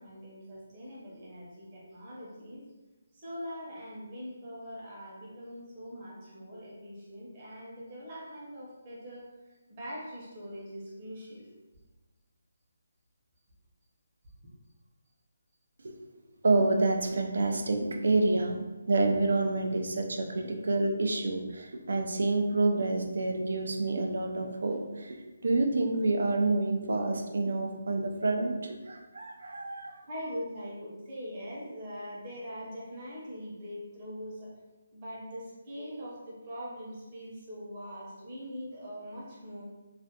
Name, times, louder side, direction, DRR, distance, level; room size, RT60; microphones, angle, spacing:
voice 1, 0.0-2.6 3.1-9.2 9.7-11.5 16.0-16.3 30.1-34.5 34.9-39.6, equal, 25° right, -6 dB, 0.7 m, -42 dB
voice 2, 16.4-25.2 25.4-30.0, right 2 dB, 70° right, 3 dB, 0.4 m, -28 dB
2.4 x 2.1 x 2.7 m, 1.1 s
hypercardioid pair, 170°, 0 cm